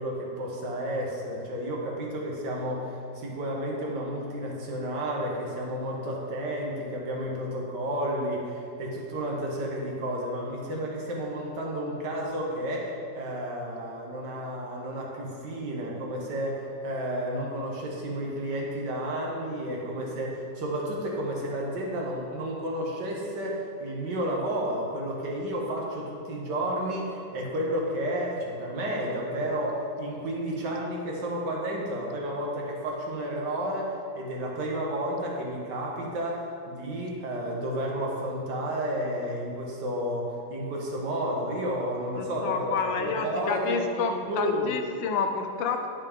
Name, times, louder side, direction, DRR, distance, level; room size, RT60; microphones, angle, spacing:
voice 1, 0.0-40.2 40.5-44.0 44.3-44.7, equal, 65° right, -2 dB, 1.7 m, -31 dB
voice 2, 42.1-45.9, left 5 dB, 80° left, 5 dB, 1.4 m, -29 dB
10.0 x 5.2 x 3.5 m, 2.4 s
omnidirectional pair, 2.1 m